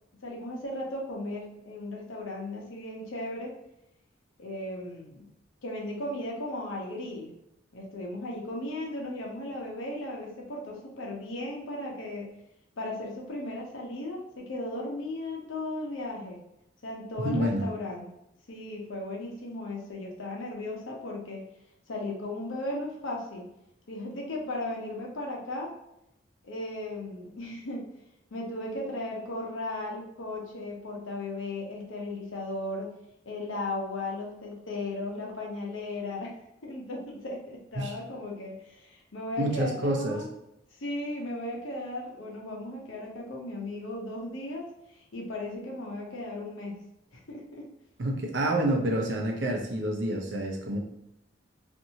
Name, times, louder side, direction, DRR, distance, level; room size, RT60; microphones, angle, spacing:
voice 1, 0.2-3.5 4.4-5.3 5.6-7.3 7.7-12.3 12.8-16.4 16.8-18.1 18.5-21.4 21.9-23.5 23.9-25.7 26.4-27.9 28.3-32.9 33.3-36.3 36.6-40.3 40.8-46.8 47.3-47.6, left 1 dB, 90° left, -1 dB, 0.7 m, -36 dB
voice 2, 17.2-17.6 37.8-37.9 39.4-40.2 48.0-50.8, right 1 dB, 65° right, 1 dB, 0.6 m, -28 dB
2.6 x 2.5 x 2.8 m, 0.83 s
head